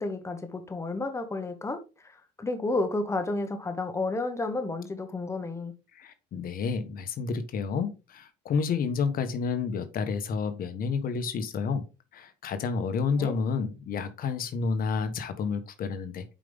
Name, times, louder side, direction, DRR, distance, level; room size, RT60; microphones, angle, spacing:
voice 1, 0.0-5.7 13.2-13.3, left 2 dB, 15° left, 1.2 m, -31 dB
voice 2, 5.9-11.8 12.1-16.2, left 5 dB, 60° left, 1.2 m, -30 dB
7.5 x 5.2 x 3.5 m
cardioid pair, 110°, 17 cm